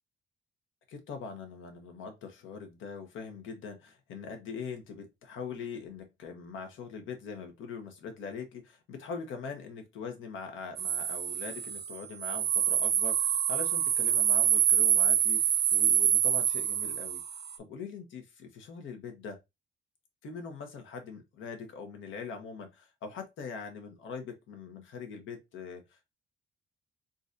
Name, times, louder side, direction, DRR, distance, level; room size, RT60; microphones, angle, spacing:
voice 1, 0.9-17.2 17.6-19.4 20.2-26.1, left 5 dB, 80° left, 1.1 m, -42 dB
sound 1, 10.8-17.6, right 10 dB, 55° right, 0.5 m, -26 dB
3.9 x 2.7 x 2.5 m
cardioid pair, 90°, 20 cm